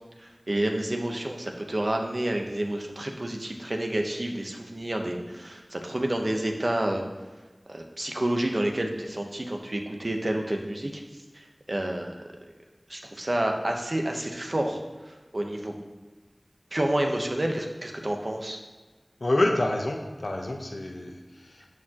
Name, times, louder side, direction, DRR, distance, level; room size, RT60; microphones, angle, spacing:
voice 1, 0.2-7.0 7.7-12.2 12.9-14.8 15.1-15.7 16.7-18.6, right 1 dB, 60° right, 2 dB, 0.9 m, -29 dB
voice 2, 19.2-21.7, left 1 dB, 90° left, 2 dB, 0.8 m, -27 dB
12.5 x 4.6 x 2.9 m, 1.2 s
wide cardioid pair, 40°, 0 cm